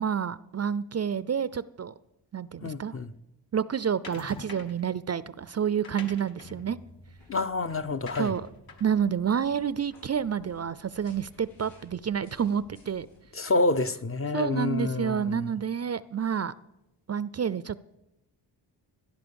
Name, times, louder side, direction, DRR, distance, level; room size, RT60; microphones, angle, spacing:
voice 1, 0.0-1.9 2.3-3.0 3.5-6.8 8.2-8.5 8.8-13.1 14.3-16.5 17.1-17.8, right 7 dB, 40° right, 0.5 m, -29 dB
voice 2, 2.6-3.1 7.3-8.3 13.3-15.5, left 2 dB, 30° left, 0.7 m, -28 dB
sound 1, 4.0-4.9 5.6-10.3, left 3 dB, 55° left, 2.2 m, -47 dB
sound 2, 6.8-13.2, equal, 90° left, 6.9 m, -56 dB
17.5 x 11.5 x 7.0 m
wide cardioid pair, 115°, 42 cm